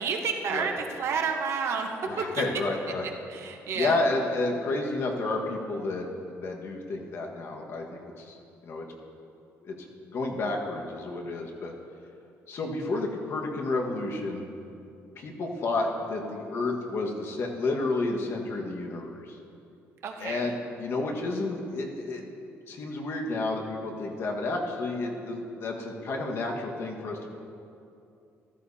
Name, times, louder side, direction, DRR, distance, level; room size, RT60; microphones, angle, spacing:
voice 1, 0.0-1.9 2.3-2.4 3.3-4.0 20.0-20.5, right 6 dB, 55° right, 3 dB, 1.0 m, -30 dB
voice 2, 2.0-3.1 3.7-7.9 8.2-8.4 8.6-8.9 9.6-11.7 12.5-14.4 15.2-19.4 20.2-22.2 22.7-27.3, left 2 dB, 50° left, 1 dB, 1.5 m, -31 dB
14.5 x 14.0 x 2.8 m, 2.6 s
cardioid pair, 150°, 5 cm